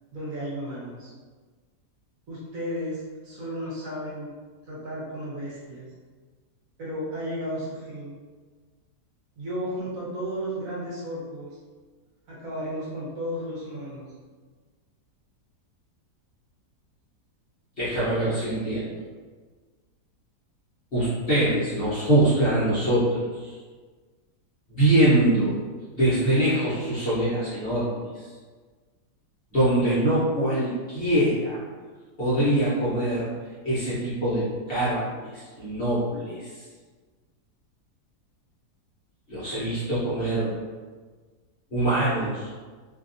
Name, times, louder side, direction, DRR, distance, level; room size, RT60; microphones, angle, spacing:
voice 1, 0.1-1.1 2.3-4.3 4.6-5.9 6.8-8.2 9.4-11.5 12.3-14.1, equal, 60° right, -7 dB, 1.0 m, -33 dB
voice 2, 17.8-19.0 20.9-23.5 24.7-25.5 26.0-28.3 29.5-31.6 32.2-33.3 33.6-36.6 39.3-40.5 41.7-42.5, right 1 dB, 45° left, -11 dB, 0.8 m, -24 dB
2.7 x 2.5 x 2.5 m, 1.4 s
omnidirectional pair, 1.8 m